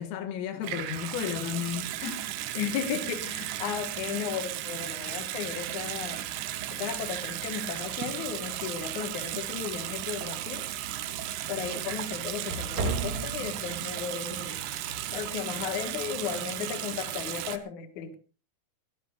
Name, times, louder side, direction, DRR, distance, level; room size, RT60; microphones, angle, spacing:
voice 1, 0.0-2.2, left 9 dB, 85° left, 4.2 m, -33 dB
Water tap faucet / Sink (filling or washing) / Bathtub (filling or washing), 0.6-17.6, right 13 dB, 75° right, 2.4 m, -35 dB
voice 2, 2.5-6.2 6.7-10.7 11.5-14.6 15.1-18.1, left 8 dB, 60° left, 2.2 m, -35 dB
sound 1, 5.5-16.3, right 3 dB, 45° right, 3.9 m, -41 dB
22.5 x 17.0 x 2.5 m
omnidirectional pair, 5.8 m